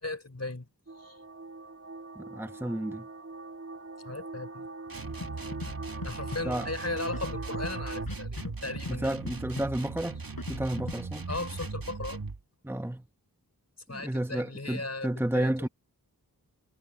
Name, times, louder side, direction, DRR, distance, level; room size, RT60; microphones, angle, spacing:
voice 1, 0.0-0.7 1.0-1.2 4.0-4.7 6.0-9.2 11.3-12.2 13.9-15.7, left 2 dB, 45° left, 4.3 m, -37 dB
sound 1, 0.9-8.1, right 3 dB, 40° right, 4.0 m, -42 dB
voice 2, 2.1-3.1 6.4-6.7 8.9-11.3 12.6-13.1 13.9-15.7, right 1 dB, 5° right, 1.2 m, -32 dB
sound 2, 4.9-12.4, right 4 dB, 65° right, 2.2 m, -39 dB
Scratching (performance technique), 5.2-5.3 5.5-5.7 6.0-6.4 7.1-7.7 8.1-8.5 8.8-9.0 9.2-9.7 10.4-10.9 11.3-11.7, left 3 dB, 65° left, 6.1 m, -37 dB
wide cardioid pair, 60°, 37 cm